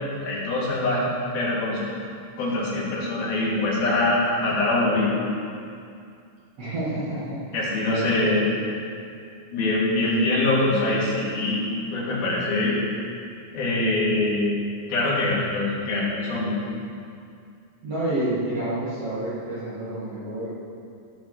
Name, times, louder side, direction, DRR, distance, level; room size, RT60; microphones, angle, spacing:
voice 1, 0.2-1.1 1.3-1.8 2.4-5.1 7.5-8.5 9.5-11.7 11.9-12.8 13.5-14.5 14.9-16.6, left 2 dB, 80° left, -6 dB, 4.4 m, -23 dB
voice 2, 6.6-7.4 7.8-8.5 10.0-10.3 17.8-20.6, right 1 dB, 45° right, -10 dB, 2.8 m, -29 dB
16.0 x 6.2 x 6.4 m, 2.4 s
omnidirectional pair, 4.2 m